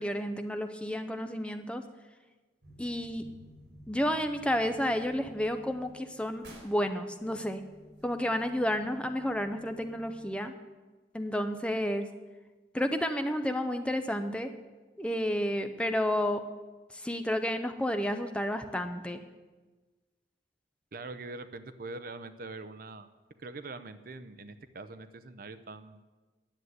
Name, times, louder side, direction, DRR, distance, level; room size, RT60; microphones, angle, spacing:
voice 1, 0.0-1.8 2.8-3.3 3.9-7.6 8.0-10.5 11.1-12.1 12.7-14.5 15.0-16.4 16.9-19.2, equal, 5° left, 7 dB, 0.6 m, -31 dB
sound 1, 2.6-10.4, equal, 70° right, 4.2 m, -54 dB
voice 2, 20.9-23.1 23.4-26.0, right 3 dB, 50° right, 11 dB, 0.7 m, -43 dB
10.5 x 8.1 x 9.4 m, 1.3 s
head